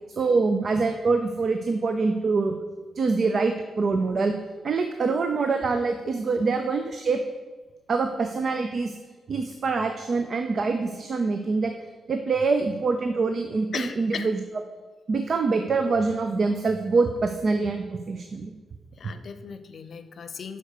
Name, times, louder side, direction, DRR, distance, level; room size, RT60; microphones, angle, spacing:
voice 1, 0.2-2.6 3.0-4.3 4.6-7.2 7.9-9.0 9.3-11.7 12.1-14.4 15.1-18.5, right 4 dB, 55° right, 6 dB, 0.5 m, -25 dB
voice 2, 13.7-14.3 18.9-20.6, left 6 dB, 60° left, 10 dB, 0.6 m, -37 dB
6.4 x 4.5 x 6.6 m, 1.3 s
cardioid pair, 65°, 0 cm